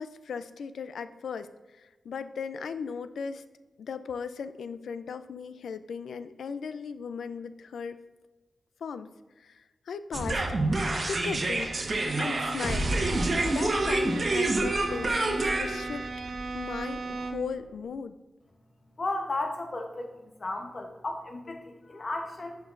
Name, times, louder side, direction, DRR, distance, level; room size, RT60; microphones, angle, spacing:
voice 1, 0.0-3.4 3.8-8.0 8.8-9.1 9.4-10.4 11.1-11.7 12.2-12.9 13.4-16.1 16.5-18.2, left 6 dB, 90° left, 12 dB, 0.4 m, -37 dB
sound 1, 10.1-17.2, right 2 dB, 45° right, 1.2 m, -28 dB
Bowed string instrument, 11.1-17.6, right 3 dB, 85° right, 0.8 m, -38 dB
voice 2, 19.0-20.1 20.4-22.6, left 2 dB, 45° left, 3 dB, 0.8 m, -34 dB
11.5 x 5.9 x 2.5 m, 1.2 s
cardioid pair, 75°, 0 cm